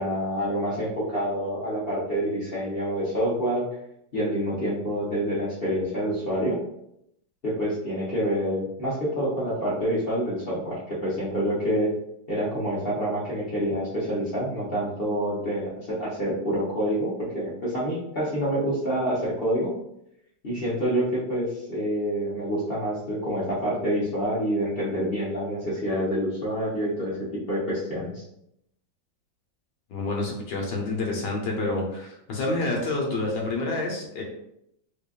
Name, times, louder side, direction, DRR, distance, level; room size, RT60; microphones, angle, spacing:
voice 1, 0.0-3.6 4.1-6.6 7.4-11.9 12.3-19.7 20.4-28.2, equal, 40° left, -8 dB, 0.9 m, -27 dB
voice 2, 29.9-34.2, left 2 dB, 75° left, -1 dB, 1.4 m, -28 dB
5.0 x 2.4 x 2.3 m, 0.77 s
omnidirectional pair, 2.0 m